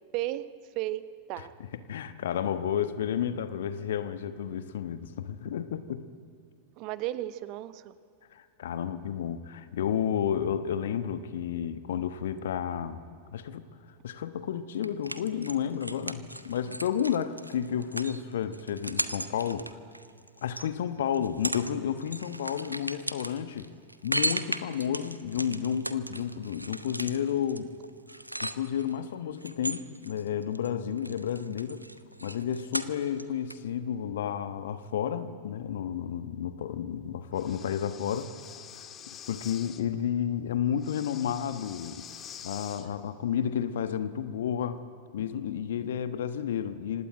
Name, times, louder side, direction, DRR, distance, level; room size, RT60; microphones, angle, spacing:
voice 1, 0.1-0.5 0.7-1.0 1.3-1.5 6.8-7.9, right 15 dB, 40° right, 14 dB, 1.0 m, -33 dB
voice 2, 1.4-6.1 8.3-13.0 13.3-13.7 14.0-19.8 20.4-23.7 24.0-27.7 28.4-31.9 32.2-38.3 39.3-42.1 42.4-44.8 45.1-47.1, left 9 dB, 60° left, 11 dB, 1.3 m, -31 dB
sound 1, 14.8-20.7 21.1-21.7 22.0-28.9 29.4-30.7 31.0-33.2 33.5-33.6, right 1 dB, 85° right, 0.9 m, -36 dB
Breathing, 37.3-39.8 40.8-42.9, left 9 dB, 30° left, 1.7 m, -46 dB
26.5 x 17.5 x 9.0 m, 2.3 s
figure-of-eight pair, 90°, 0 cm